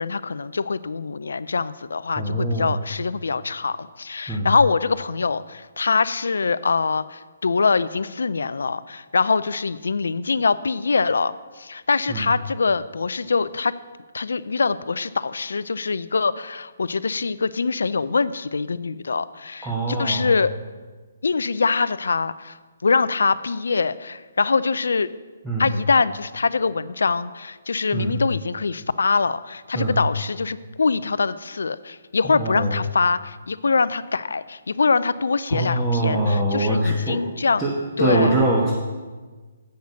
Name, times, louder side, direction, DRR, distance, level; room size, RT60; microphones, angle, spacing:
voice 1, 0.0-13.7 14.1-20.5 21.2-25.1 25.6-37.6 38.0-38.3, left 4 dB, 75° left, 16 dB, 0.4 m, -23 dB
voice 2, 2.2-2.8 4.3-4.5 12.1-12.3 19.6-20.3 25.4-25.7 27.9-28.2 29.7-30.0 32.2-32.8 35.5-37.2 37.6-38.7, right 1 dB, 10° right, -3 dB, 1.2 m, -23 dB
7.9 x 6.4 x 6.8 m, 1.3 s
hypercardioid pair, 145°, 0 cm